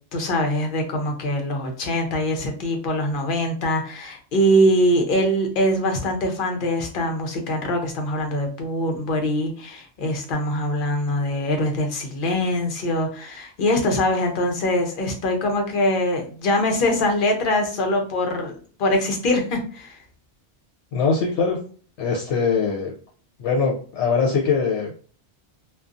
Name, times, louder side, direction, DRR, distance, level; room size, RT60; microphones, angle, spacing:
voice 1, 0.1-20.0, left 1 dB, 55° left, 3 dB, 0.8 m, -23 dB
voice 2, 20.9-21.6 22.0-22.9 23.4-25.0, left 5 dB, 80° left, -1 dB, 0.9 m, -22 dB
2.5 x 2.2 x 2.4 m, 0.42 s
omnidirectional pair, 1.2 m